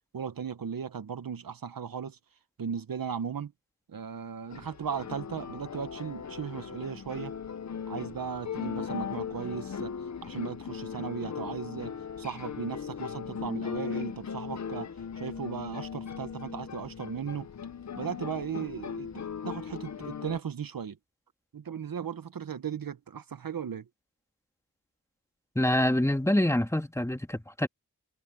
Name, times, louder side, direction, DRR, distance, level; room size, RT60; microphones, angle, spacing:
voice 1, 0.1-2.2 2.6-3.5 3.9-7.3 7.9-9.9 10.2-17.5 18.0-21.0 21.5-23.9, right 7 dB, 65° right, 1.0 m, -37 dB
sound 1, 4.5-20.4, left 7 dB, 50° left, 0.7 m, -38 dB
voice 2, 25.5-27.7, left 1 dB, 10° left, 1.8 m, -26 dB
wide cardioid pair, 120°, 37 cm